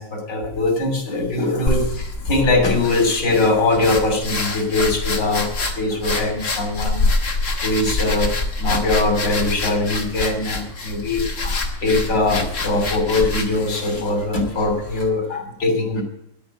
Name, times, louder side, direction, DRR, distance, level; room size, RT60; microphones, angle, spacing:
voice 1, 0.0-7.0 7.6-8.3 8.6-16.0, left 2 dB, 90° left, 5 dB, 3.7 m, -21 dB
sound 1, 1.7-15.1, left 2 dB, 45° left, 2.1 m, -26 dB
10.5 x 8.6 x 8.9 m, 0.79 s
omnidirectional pair, 1.8 m